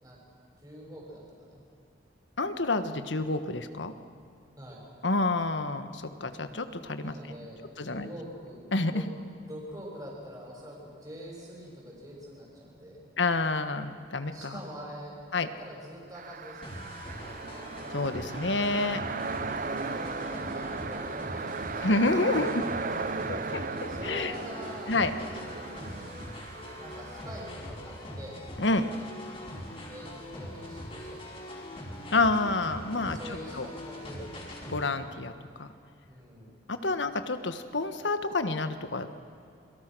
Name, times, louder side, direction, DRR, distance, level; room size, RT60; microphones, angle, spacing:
voice 1, 0.6-1.6 4.6-4.8 7.0-8.6 8.9-9.0 9.5-13.1 14.3-16.7 19.7-22.0 22.3-22.7 23.9-25.0 25.2-26.2 26.8-28.4 29.9-31.4 33.0-34.4 36.1-36.5, equal, 20° right, -3 dB, 6.6 m, -45 dB
voice 2, 2.4-3.9 5.0-7.1 7.8-8.1 8.7-9.0 13.2-14.6 15.3-15.5 17.9-19.0 21.8-22.7 23.3-24.3 24.9-25.1 28.6-28.9 32.1-33.2 33.6-33.7 34.7-35.3 35.6-35.7 36.7-39.1, left 3 dB, 80° left, 9 dB, 1.5 m, -28 dB
sound 1, 16.1-27.5, right 4 dB, 45° right, 0.8 m, -36 dB
sound 2, 16.6-34.9, left 1 dB, 30° left, 5.2 m, -42 dB
29.0 x 23.5 x 6.3 m, 2.6 s
head